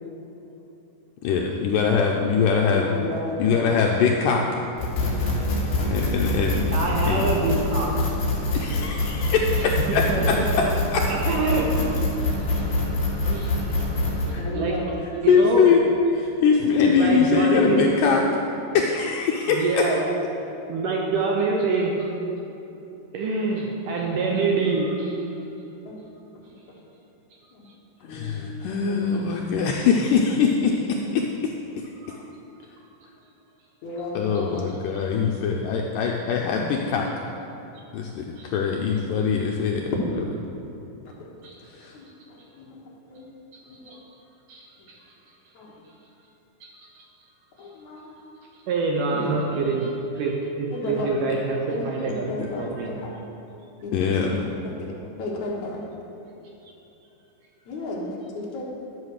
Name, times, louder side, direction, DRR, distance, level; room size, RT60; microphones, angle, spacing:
voice 1, 1.2-2.9 3.4-4.5 5.9-6.7 7.1-7.3 8.5-10.4 10.9-11.0 14.3-14.4 15.3-18.2 18.7-19.8 28.1-31.2 32.1-32.2 34.1-37.1 37.9-40.2 41.7-41.9 53.9-54.3, left 6 dB, 85° left, 0 dB, 1.9 m, -22 dB
voice 2, 2.9-3.6 5.8-6.0 12.7-12.8 14.4-14.9 25.9-26.0 28.0-28.5 28.8-29.1 33.8-34.6 41.9-42.0 42.7-42.8 43.1-43.3 45.6-45.7 47.6-48.1 49.1-49.4 50.7-51.1 51.7-52.9 53.8-54.1 54.6-54.9 55.2-55.8 57.7-58.6, left 2 dB, 60° left, -3 dB, 2.4 m, -33 dB
sound 1, 4.8-14.3, left 2 dB, 35° left, 2.6 m, -25 dB
voice 3, 6.7-7.9 9.6-10.7 11.1-12.0 12.4-12.5 13.2-13.6 14.2-14.9 15.2-15.7 16.9-17.9 19.5-20.0 20.7-22.1 23.1-25.2 28.2-28.4 32.0-32.2 38.4-38.5 41.4-41.6 43.5-44.0 44.5-44.7 46.6-47.0 48.7-52.9, right 4 dB, 75° right, 0 dB, 2.1 m, -26 dB
11.5 x 5.7 x 6.5 m, 2.9 s
omnidirectional pair, 4.5 m